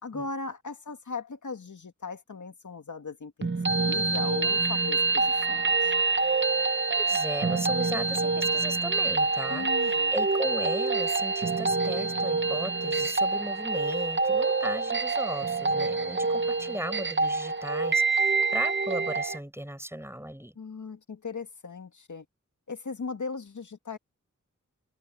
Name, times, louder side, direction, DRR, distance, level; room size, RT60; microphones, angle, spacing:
voice 1, 0.0-3.5 3.8-5.9 9.5-10.1 20.6-22.3 22.7-24.0, left 4 dB, 75° left, 2.2 m, -38 dB
sound 1, 3.4-19.4, right 3 dB, 40° right, 1.0 m, -26 dB
voice 2, 7.0-20.5, right 1 dB, 10° right, 5.3 m, -36 dB
wide cardioid pair, 55°, 30 cm